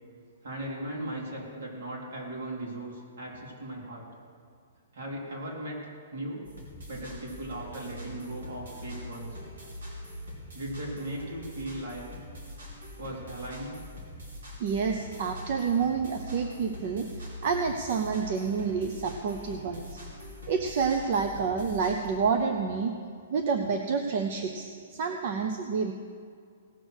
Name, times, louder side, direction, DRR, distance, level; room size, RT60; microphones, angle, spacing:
voice 1, 0.4-4.1 4.9-6.5 6.9-9.5 10.5-12.1 12.9-13.9, right 1 dB, 60° right, -3 dB, 3.7 m, -38 dB
sound 1, 6.4-22.1, left 1 dB, 85° right, 3.8 m, -43 dB
voice 2, 14.6-20.0 20.5-22.9 23.3-25.9, right 5 dB, 40° right, 5 dB, 0.6 m, -29 dB
18.0 x 6.4 x 6.3 m, 2.2 s
hypercardioid pair, 175°, 0 cm